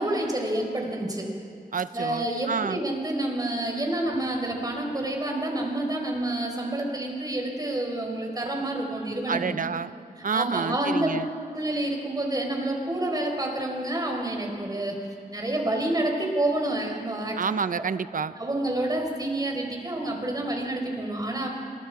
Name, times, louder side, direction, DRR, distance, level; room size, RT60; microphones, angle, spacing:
voice 1, 0.0-1.3 1.9-9.6 10.2-11.1 11.5-15.0 15.3-17.4 18.4-21.5, right 1 dB, 25° right, 1 dB, 4.6 m, -28 dB
voice 2, 1.7-2.8 9.3-9.9 10.2-11.3 17.4-18.3, right 6 dB, 60° right, 14 dB, 0.7 m, -28 dB
26.0 x 22.0 x 4.8 m, 2.5 s
wide cardioid pair, 85°, 16 cm